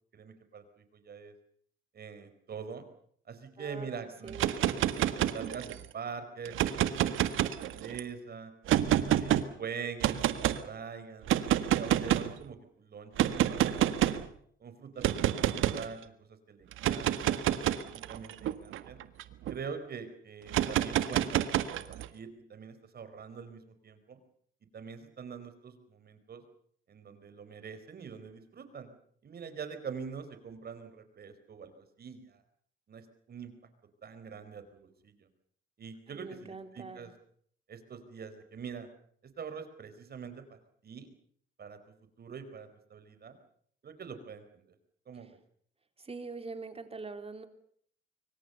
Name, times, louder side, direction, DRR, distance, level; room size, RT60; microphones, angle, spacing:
voice 1, 0.1-1.3 1.9-2.8 3.3-8.5 9.0-11.3 11.6-14.1 14.6-16.1 16.5-17.1 17.6-19.0 19.5-24.2 24.7-26.4 26.9-28.9 29.2-32.4 32.9-33.5 34.0-35.3 35.8-37.1 37.7-38.9 39.2-41.1 41.6-41.8 42.2-43.4 43.8-44.7 45.1-45.4, right 6 dB, 50° right, 10 dB, 4.5 m, -44 dB
voice 2, 3.6-4.6 36.1-37.1 46.0-47.5, right 4 dB, 30° right, 8 dB, 3.4 m, -43 dB
sound 1, 4.3-5.8 6.5-8.0 8.7-9.4 10.0-10.6 11.3-12.4 13.2-14.3 15.0-15.9 16.7-19.5 20.5-22.1, right 12 dB, 85° right, 1.6 m, -28 dB
25.0 x 24.5 x 7.0 m, 0.63 s
cardioid pair, 90°, 20 cm